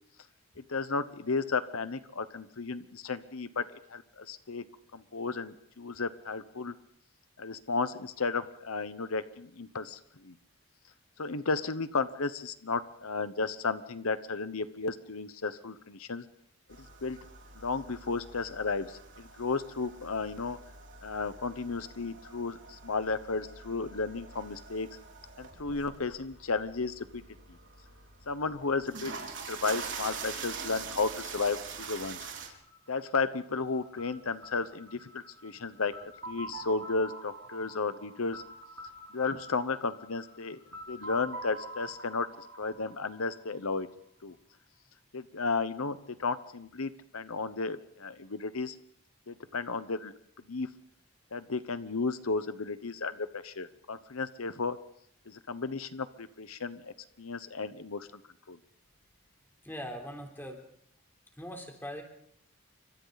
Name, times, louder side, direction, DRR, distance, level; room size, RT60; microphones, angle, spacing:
voice 1, 0.7-3.6 3.9-4.6 4.9-6.7 7.4-10.3 11.2-16.2 17.0-17.2 17.6-20.6 21.0-24.9 25.4-27.2 28.3-32.2 32.9-38.4 39.1-40.6 40.9-42.3 42.6-43.9 44.2-44.3 45.1-48.8 49.3-50.1 50.5-50.7 51.3-54.8 55.3-58.1 58.5-58.6, left 4 dB, 75° left, 12 dB, 1.0 m, -33 dB
sound 1, 16.7-32.5, right 5 dB, 55° right, 4.6 m, -45 dB
sound 2, 32.0-43.8, right 1 dB, 75° right, 5.9 m, -46 dB
voice 2, 59.6-60.6 61.4-62.0, equal, 10° left, 3 dB, 3.6 m, -41 dB
29.5 x 25.5 x 4.1 m, 0.70 s
head